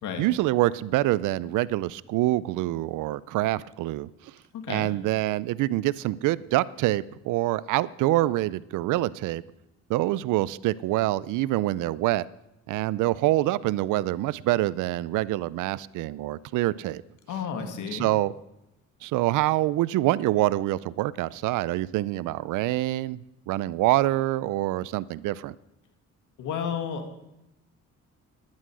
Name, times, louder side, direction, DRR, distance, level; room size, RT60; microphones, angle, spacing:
voice 1, 0.2-4.3 4.7-9.4 9.9-12.3 12.7-17.0 17.9-18.3 19.0-23.2 23.5-25.5, right 16 dB, 90° right, 20 dB, 0.5 m, -26 dB
voice 2, 4.5-4.9 17.3-18.1 26.4-27.2, left 7 dB, 80° left, 6 dB, 2.1 m, -32 dB
11.5 x 10.5 x 6.2 m, 0.89 s
cardioid pair, 90°, 30 cm